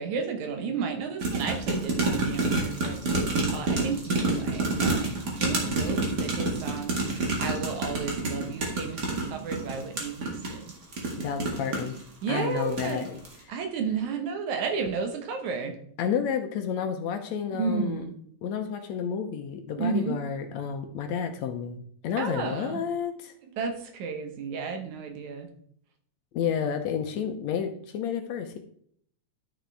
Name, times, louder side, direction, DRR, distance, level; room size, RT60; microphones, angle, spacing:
voice 1, 0.0-3.0 3.5-10.7 12.2-13.1 13.5-15.8 17.6-18.1 19.8-20.2 22.2-22.8 23.6-25.5, right 5 dB, 75° right, 6 dB, 2.5 m, -32 dB
sound 1, 1.2-12.0 12.6-13.0 13.2-13.3, right 3 dB, 40° right, 2.0 m, -28 dB
voice 2, 11.2-12.0 12.3-13.2 16.0-18.0 18.4-23.3 26.3-28.6, left 7 dB, 75° left, 6 dB, 1.9 m, -30 dB
11.0 x 6.4 x 3.4 m, 0.63 s
omnidirectional pair, 3.5 m